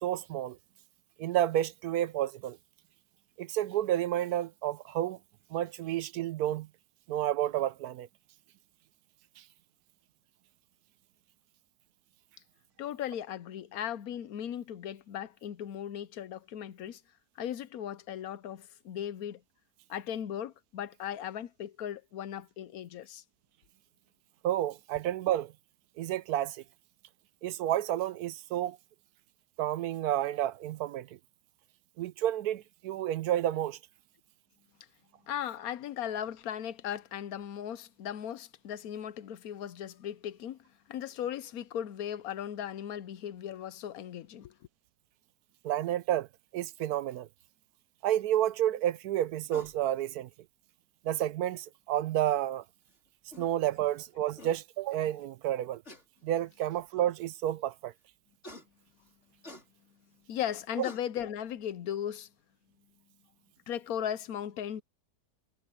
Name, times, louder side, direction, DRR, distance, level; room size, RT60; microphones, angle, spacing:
voice 1, 0.0-0.6 1.2-2.6 3.4-5.2 5.5-6.7 7.1-8.1 24.4-25.5 26.0-26.6 27.4-28.8 29.6-31.1 32.0-33.8 45.6-46.3 46.5-47.3 48.0-50.3 51.0-52.6 53.4-55.8 56.2-57.9, right 12 dB, 80° right, 1.1 m, -30 dB
voice 2, 12.8-17.0 17.4-19.4 19.9-23.2 35.3-40.6 40.9-44.5 60.3-62.3 63.7-64.8, left 10 dB, 70° left, 1.1 m, -37 dB
sound 1, 49.5-49.8 51.3-51.4 52.9-53.0 53.3-53.5 54.1-54.2 54.4-54.6 55.8-56.0 56.9-57.0 58.4-58.7 59.4-59.7 60.4-60.5 60.8-61.0, left 1 dB, 45° left, 5.6 m, -46 dB
omnidirectional pair, 1.7 m